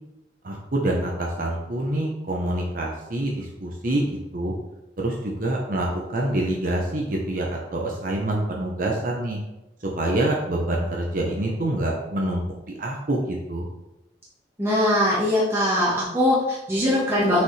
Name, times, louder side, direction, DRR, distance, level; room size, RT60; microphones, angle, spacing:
voice 1, 0.4-4.5 5.0-9.4 10.0-12.4 12.8-13.7, right 1 dB, 50° right, -1 dB, 0.9 m, -26 dB
voice 2, 14.6-17.4, left 1 dB, 15° right, -8 dB, 1.4 m, -21 dB
6.3 x 5.2 x 3.3 m, 0.94 s
head